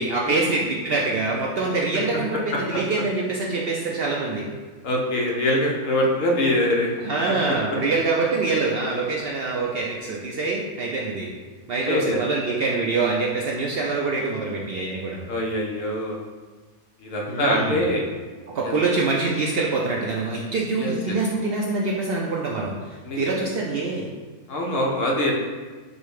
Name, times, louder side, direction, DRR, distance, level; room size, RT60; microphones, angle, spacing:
voice 1, 0.0-4.5 7.0-11.3 11.7-15.3 17.3-17.8 18.5-24.1, right 3 dB, 70° right, -2 dB, 0.5 m, -25 dB
voice 2, 4.8-6.9 11.8-12.2 15.3-16.2 17.0-18.0 18.7-18.8 20.7-21.2 23.0-23.4 24.5-25.3, left 1 dB, 65° left, -1 dB, 1.0 m, -23 dB
5.2 x 2.1 x 4.7 m, 1.4 s
omnidirectional pair, 1.5 m